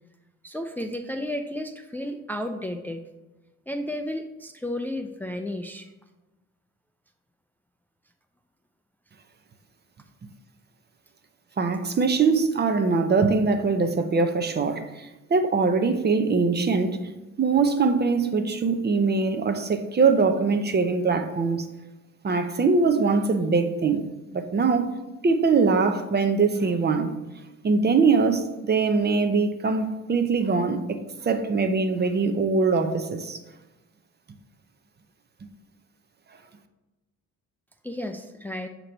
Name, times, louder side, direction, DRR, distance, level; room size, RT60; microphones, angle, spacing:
voice 1, 0.4-3.0 3.7-5.9 37.8-38.7, left 1 dB, 5° left, 5 dB, 0.4 m, -32 dB
voice 2, 11.6-17.0 17.4-21.7 22.2-24.0 24.3-25.0 25.2-27.1 27.6-33.4, right 4 dB, 35° right, 8 dB, 0.7 m, -22 dB
8.2 x 3.0 x 5.1 m, 1.1 s
cardioid pair, 90°, 30 cm